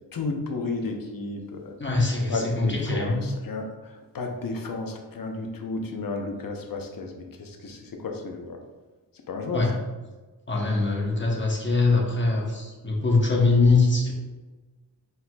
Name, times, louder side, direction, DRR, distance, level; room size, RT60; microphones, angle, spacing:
voice 1, 0.0-1.7 2.3-8.6 9.3-9.6, left 3 dB, 55° left, 3 dB, 0.8 m, -33 dB
voice 2, 1.8-3.2 9.5-9.7 10.5-14.1, left 3 dB, 25° left, -2 dB, 1.0 m, -22 dB
4.2 x 4.0 x 2.3 m, 1.2 s
cardioid pair, 60°, 42 cm